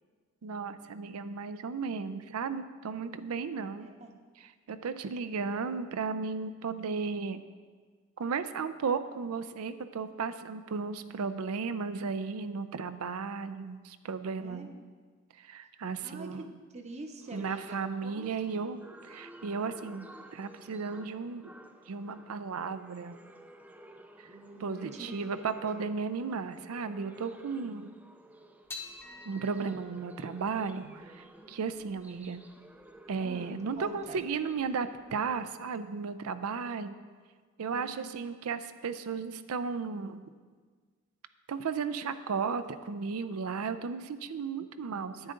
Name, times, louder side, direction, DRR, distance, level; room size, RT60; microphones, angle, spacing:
voice 1, 0.4-3.9 4.7-7.4 8.2-14.7 15.4-16.4 17.3-21.5 21.9-23.2 24.2-24.3 24.6-27.9 29.3-32.4 33.1-36.9 37.6-40.2 41.5-45.3, right 5 dB, 85° right, 11 dB, 0.5 m, -35 dB
voice 2, 3.8-4.1 14.3-14.8 16.0-18.6 24.2-25.1 25.4-25.6 33.1-34.2 37.7-38.1, right 1 dB, 30° right, 5 dB, 0.7 m, -45 dB
sound 1, 17.2-35.8, right 1 dB, 5° right, 0.4 m, -54 dB
sound 2, 28.7-35.2, left 3 dB, 10° left, 0.8 m, -51 dB
10.0 x 8.8 x 3.8 m, 1.5 s
head